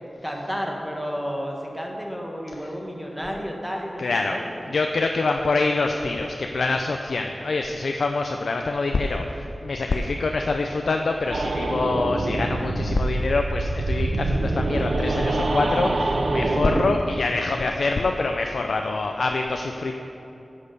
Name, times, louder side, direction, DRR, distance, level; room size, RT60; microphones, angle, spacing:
voice 1, 0.2-4.5, equal, ahead, 0 dB, 1.6 m, -31 dB
voice 2, 4.0-4.4 4.7-19.9, left 3 dB, 85° left, 4 dB, 0.4 m, -25 dB
sound 1, 11.3-16.9, right 2 dB, 70° right, 0.6 m, -25 dB
10.0 x 6.5 x 5.3 m, 3.0 s
wide cardioid pair, 55°, 0 cm